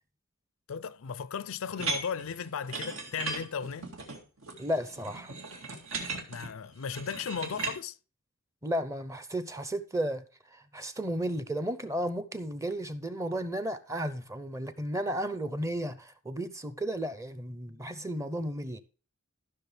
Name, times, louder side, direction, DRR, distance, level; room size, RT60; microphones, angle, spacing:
voice 1, 0.7-3.9 6.3-8.0, left 6 dB, 80° left, 0.5 m, -36 dB
sound 1, 1.8-7.8, right 3 dB, 80° right, 2.2 m, -37 dB
voice 2, 4.6-5.3 8.6-10.2 10.5-18.8, equal, 15° right, 0.7 m, -33 dB
14.5 x 6.2 x 3.3 m
head